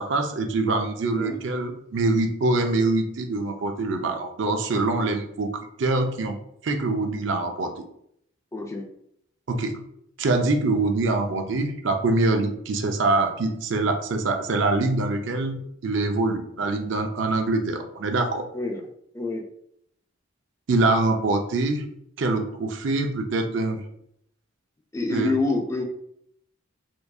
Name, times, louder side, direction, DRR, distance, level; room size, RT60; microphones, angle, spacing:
voice 1, 0.0-6.3 6.6-7.7 9.5-9.8 10.2-18.5 20.7-21.9 22.2-23.8 25.1-25.3, right 2 dB, 65° right, 4 dB, 0.5 m, -24 dB
voice 2, 8.5-8.9 18.5-18.9 19.1-19.4 24.9-25.8, left 3 dB, 15° left, 2 dB, 0.4 m, -27 dB
4.4 x 2.5 x 2.3 m, 0.72 s
head